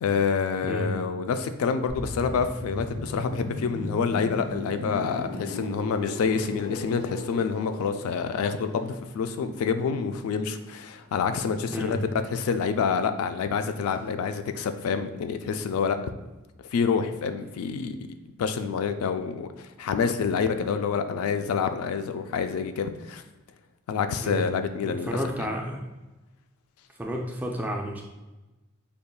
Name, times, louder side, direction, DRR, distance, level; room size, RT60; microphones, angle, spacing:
voice 1, 0.0-12.0 12.2-16.0 16.7-18.0 18.4-23.2 23.9-25.5, left 6 dB, 90° left, 10 dB, 0.3 m, -27 dB
voice 2, 0.6-1.0 11.7-12.0 24.2-24.5 24.8-25.8 27.0-28.0, equal, 10° right, 0 dB, 0.3 m, -31 dB
sound 1, 1.9-11.5 11.8-12.0, left 1 dB, 50° left, 0.8 m, -38 dB
5.2 x 2.3 x 2.3 m, 1.1 s
head